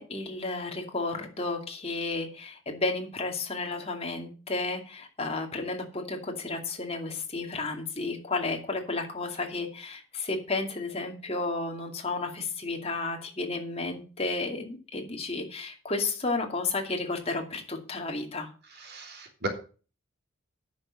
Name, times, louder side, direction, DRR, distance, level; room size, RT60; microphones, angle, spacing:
voice 1, 0.0-18.5, left 3 dB, 30° left, 3 dB, 2.4 m, -32 dB
voice 2, 18.8-19.5, right 2 dB, 50° right, 3 dB, 3.3 m, -35 dB
10.0 x 6.5 x 7.3 m, 0.38 s
head